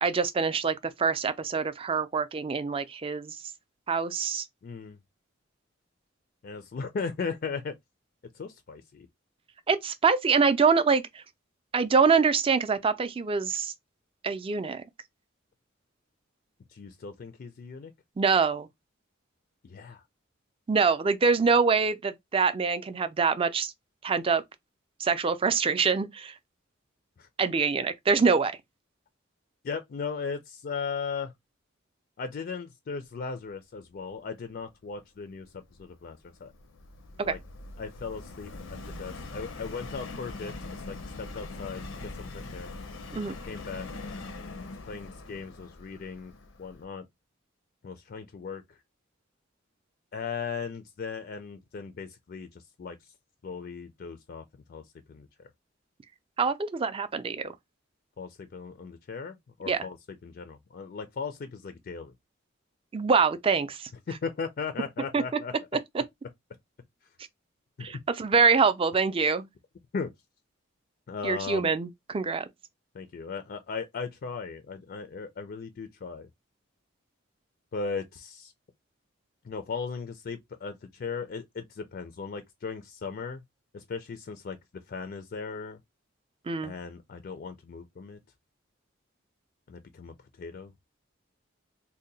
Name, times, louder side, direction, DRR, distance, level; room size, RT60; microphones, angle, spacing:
voice 1, 0.0-3.4 3.9-4.4 9.7-11.2 11.7-13.7 14.2-14.8 18.2-18.7 20.7-23.7 24.0-24.4 25.0-26.3 27.4-28.6 37.2-37.3 43.1-43.4 56.4-57.5 59.7-59.9 62.9-63.9 65.1-65.2 65.9-66.0 67.8-69.5 71.2-72.5 86.5-86.7, right 5 dB, 30° right, 0.4 m, -25 dB
voice 2, 4.6-5.0 6.4-7.7 8.3-9.1 16.7-17.9 19.6-20.0 27.2-27.3 29.6-31.3 32.2-36.5 37.2-37.4 37.8-42.7 43.5-43.9 44.9-46.3 46.6-47.1 47.8-48.6 50.1-53.0 53.4-54.4 54.7-54.8 55.1-55.5 58.2-60.0 60.2-62.1 64.1-65.5 67.8-68.0 69.9-70.1 71.1-71.7 72.9-76.3 77.7-78.5 79.4-83.4 83.7-85.8 86.6-88.2 89.7-90.7, left 5 dB, 50° left, 0.4 m, -37 dB
Subway metro underground, 35.5-46.8, left 2 dB, 90° left, 0.6 m, -42 dB
2.7 x 2.1 x 3.9 m
head